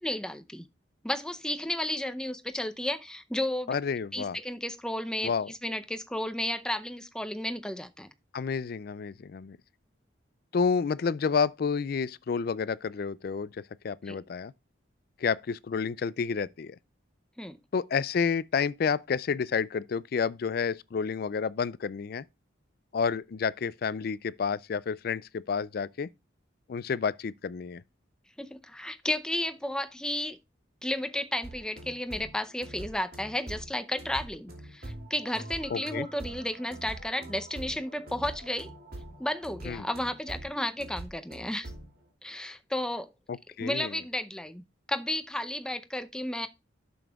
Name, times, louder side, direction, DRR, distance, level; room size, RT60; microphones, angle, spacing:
voice 1, 0.0-0.6 1.0-3.7 4.1-8.1 14.1-14.2 17.4-17.6 28.4-30.4 30.8-38.7 39.2-41.7 42.2-43.1 43.6-46.5, left 1 dB, 5° left, 0.6 m, -33 dB
voice 2, 3.7-4.4 5.2-5.5 8.3-9.6 10.5-14.5 15.2-16.8 17.7-22.2 22.9-26.1 26.7-27.8 35.7-36.1 39.6-39.9 43.3-43.9, left 5 dB, 50° left, 0.3 m, -30 dB
sound 1, 31.4-41.9, right 1 dB, 50° right, 2.7 m, -44 dB
11.0 x 6.9 x 2.3 m
head